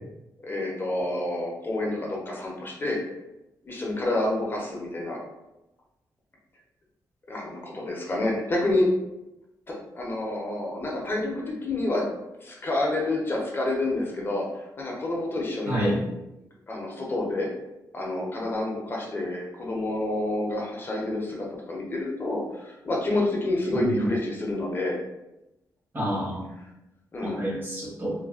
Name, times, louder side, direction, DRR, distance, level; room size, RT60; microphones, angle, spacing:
voice 1, 0.4-3.0 3.6-5.2 7.3-8.9 9.7-12.0 12.4-15.9 16.7-17.5 17.9-25.0 27.1-27.4, left 2 dB, 30° left, -2 dB, 0.6 m, -28 dB
voice 2, 15.7-16.0 23.7-24.1 25.9-26.5 27.2-28.1, right 1 dB, 30° right, -6 dB, 1.0 m, -28 dB
3.2 x 2.2 x 2.3 m, 0.94 s
wide cardioid pair, 130°, 7 cm